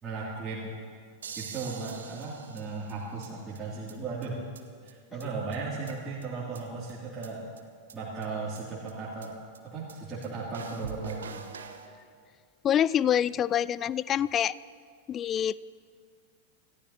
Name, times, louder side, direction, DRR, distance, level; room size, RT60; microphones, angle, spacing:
voice 1, 0.0-0.7 1.4-4.4 4.8-7.5 7.9-9.3 9.6-11.4, right 4 dB, 20° right, -8 dB, 2.6 m, -36 dB
sound 1, 1.2-3.3 3.5-3.6 3.9-4.0 4.2-4.3 4.5-4.6 4.9-5.0 5.2-5.3 5.5-6.2 6.5-6.6 6.9-7.0 7.2-7.3 7.6-7.7 7.9-8.0 8.2-8.3 8.5-8.6 8.9-9.0 9.2-9.3 9.5-9.6 9.9-10.0 10.2-10.3 10.5-11.9, right 6 dB, 65° right, 1.1 m, -43 dB
voice 2, 12.6-14.5 15.1-15.6, left 10 dB, 30° left, 19 dB, 0.3 m, -26 dB
27.0 x 15.0 x 2.8 m, 2.1 s
figure-of-eight pair, 90°, 0 cm